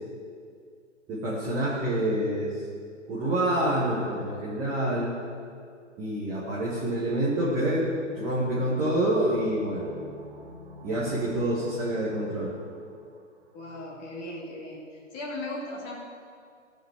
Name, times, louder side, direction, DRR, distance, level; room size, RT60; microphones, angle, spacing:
voice 1, 1.1-2.5 3.1-5.1 6.0-9.9 10.8-12.5, right 1 dB, 5° right, -7 dB, 0.6 m, -27 dB
sound 1, 7.5-13.2 13.5-13.6, equal, 25° right, 3.0 m, -47 dB
voice 2, 13.5-14.8 15.1-16.0, left 1 dB, 20° left, -3 dB, 1.9 m, -37 dB
15.5 x 5.3 x 7.0 m, 2.2 s
figure-of-eight pair, 135°, 38 cm